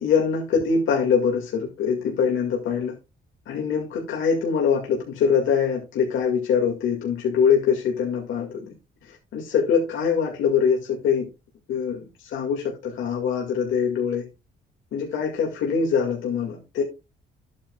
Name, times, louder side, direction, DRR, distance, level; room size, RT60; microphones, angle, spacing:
voice 1, 0.0-3.0 3.5-8.7 9.0-11.3 11.7-14.3 14.9-16.8, left 6 dB, 80° left, 2.1 m, -23 dB
11.5 x 8.7 x 2.4 m
cardioid pair, 90°, 20 cm